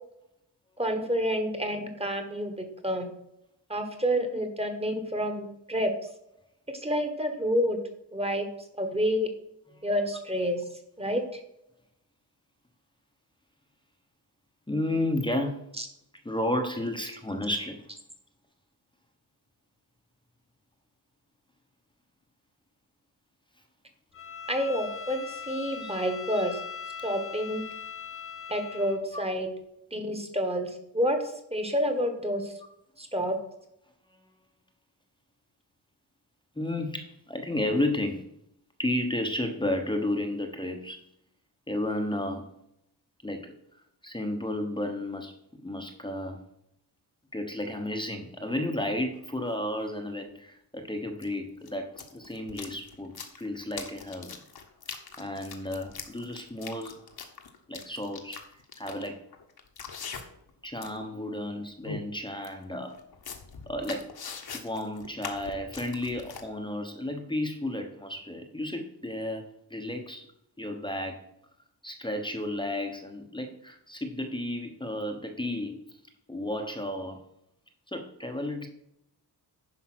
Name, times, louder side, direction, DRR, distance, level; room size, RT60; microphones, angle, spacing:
voice 1, 0.8-2.5 2.8-3.1 3.7-5.9 6.7-7.8 8.1-8.5 8.8-9.3 9.8-10.6 11.0-11.4 15.8-15.9 24.5-26.6 27.0-27.6 28.5-29.5 29.9-31.2 31.5-32.5 33.0-33.3, equal, 15° right, 5 dB, 1.4 m, -28 dB
voice 2, 14.7-15.6 16.2-17.9 25.8-25.9 34.1-34.2 36.6-38.3 38.8-41.0 41.7-42.5 43.2-45.3 45.6-46.4 47.3-54.4 55.2-57.0 57.7-59.2 60.6-63.0 63.7-64.1 64.5-70.3 70.6-71.2 71.8-75.8 76.3-77.2 77.9-78.7, left 1 dB, 10° left, 4 dB, 1.0 m, -32 dB
Bowed string instrument, 24.1-29.0, left 6 dB, 30° left, 0.7 m, -40 dB
sound 1, 49.2-49.3 51.2-51.3 51.6-60.5 60.8-61.1 61.4-61.5 61.8-62.0 62.4-62.5 62.9-66.4, left 5 dB, 55° left, 1.4 m, -42 dB
10.5 x 5.3 x 6.1 m, 0.79 s
wide cardioid pair, 140°, 44 cm